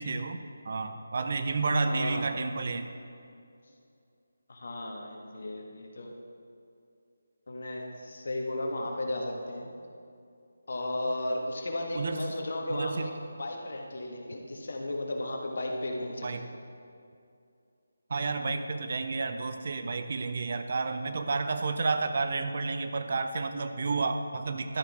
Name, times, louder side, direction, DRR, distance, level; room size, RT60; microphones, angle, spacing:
voice 1, 0.0-2.9 11.9-12.3 12.7-13.1 16.2-16.4 18.1-24.8, right 3 dB, 50° right, 8 dB, 0.6 m, -31 dB
voice 2, 1.9-2.3 4.5-6.1 7.5-9.7 10.7-13.1 13.4-16.4, left 1 dB, 55° left, 1 dB, 1.5 m, -34 dB
12.5 x 9.0 x 3.5 m, 2.5 s
figure-of-eight pair, 155°, 0 cm